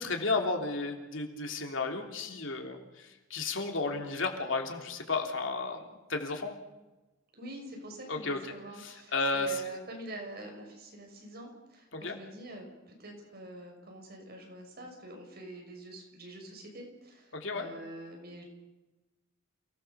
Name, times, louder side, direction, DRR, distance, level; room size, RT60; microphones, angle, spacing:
voice 1, 0.0-6.5 8.1-8.4 8.8-9.6 11.9-12.2 17.3-17.7, left 3 dB, 65° left, 3 dB, 3.2 m, -33 dB
voice 2, 7.3-18.4, right 1 dB, 50° right, 2 dB, 6.4 m, -46 dB
29.0 x 19.0 x 6.9 m, 1.1 s
head